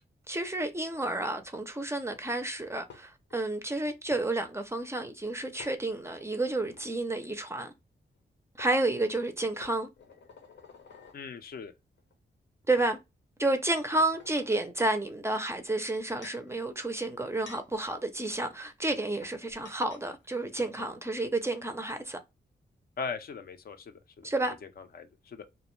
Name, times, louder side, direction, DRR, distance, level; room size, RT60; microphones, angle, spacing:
voice 1, 0.3-7.7 8.6-9.9 12.7-13.0 13.4-22.2 24.2-24.5, right 2 dB, 15° right, 0.4 m, -30 dB
sound 1, 2.9-3.4 4.1-4.2 5.6-6.3 6.7-6.9 8.1-8.2 8.6-8.8 9.6-11.2 12.0-12.1 12.8-12.9 13.4-14.6 15.7-16.5 17.1-20.1 20.3-20.4 20.6-20.9, left 5 dB, 85° left, 0.7 m, -52 dB
voice 2, 11.1-11.7 23.0-24.3 24.8-25.5, left 5 dB, 55° left, 0.4 m, -39 dB
2.4 x 2.1 x 3.0 m
wide cardioid pair, 110°, 18 cm